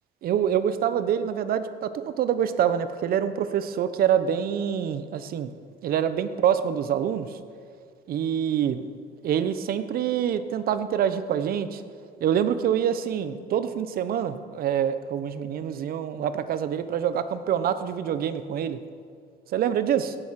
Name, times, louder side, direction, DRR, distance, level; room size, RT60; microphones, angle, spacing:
voice 1, 0.2-5.5 5.8-7.3 8.1-8.9 9.2-11.8 12.2-18.8 19.5-20.1, right 9 dB, 60° right, 12 dB, 0.8 m, -26 dB
17.0 x 7.8 x 5.8 m, 2.2 s
cardioid pair, 110°, 17 cm